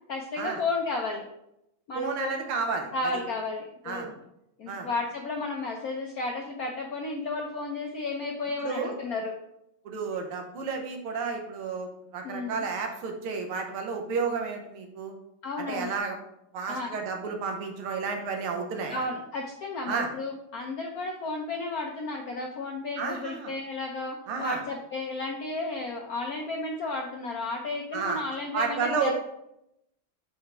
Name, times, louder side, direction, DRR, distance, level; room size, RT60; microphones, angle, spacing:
voice 1, 0.1-1.3 1.9-2.4 2.9-4.2 4.6-9.3 12.2-12.6 15.4-16.0 16.7-17.0 18.9-29.1, left 3 dB, 70° left, 1 dB, 0.8 m, -33 dB
voice 2, 1.9-3.1 3.9-4.1 4.7-4.9 8.6-8.9 9.9-11.9 12.1-15.1 15.7-16.2 16.5-19.1 19.9-20.1 23.0-23.5 24.3-24.6 27.9-28.2 28.5-29.1, right 5 dB, 75° right, 3 dB, 1.9 m, -31 dB
5.4 x 4.8 x 4.8 m, 0.82 s
omnidirectional pair, 2.4 m